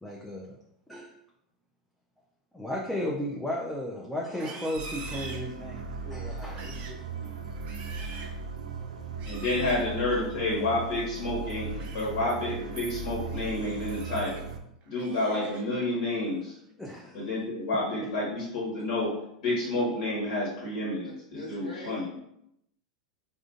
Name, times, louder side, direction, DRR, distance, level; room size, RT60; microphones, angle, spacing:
voice 1, 0.0-0.6 0.9-1.2 2.5-7.5 7.9-8.0 16.8-17.2, left 1 dB, 5° left, -3 dB, 0.5 m, -35 dB
Livestock farm animals working animals, 4.3-5.9 6.4-7.0 7.5-8.4 9.1-9.8 11.5-12.1 12.5-12.8 13.3-14.4 14.8-15.8 16.2-16.6 17.0-17.4, right 4 dB, 40° right, 0.6 m, -46 dB
sound 1, 4.7-14.6, right 4 dB, 85° right, 0.4 m, -38 dB
voice 2, 9.3-14.4 14.8-16.6 17.1-19.1 19.4-22.1, left 2 dB, 70° left, -6 dB, 1.4 m, -29 dB
voice 3, 21.0-22.1, left 2 dB, 85° left, -3 dB, 1.1 m, -42 dB
3.6 x 2.5 x 2.4 m, 0.77 s
hypercardioid pair, 95°, 4 cm